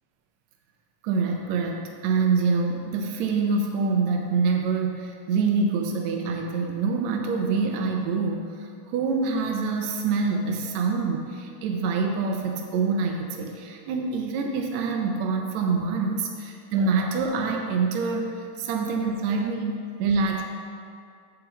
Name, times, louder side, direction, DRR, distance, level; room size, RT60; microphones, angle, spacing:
voice 1, 1.0-20.4, right 4 dB, 75° right, 2 dB, 1.7 m, -26 dB
9.9 x 3.7 x 7.1 m, 2.3 s
omnidirectional pair, 3.7 m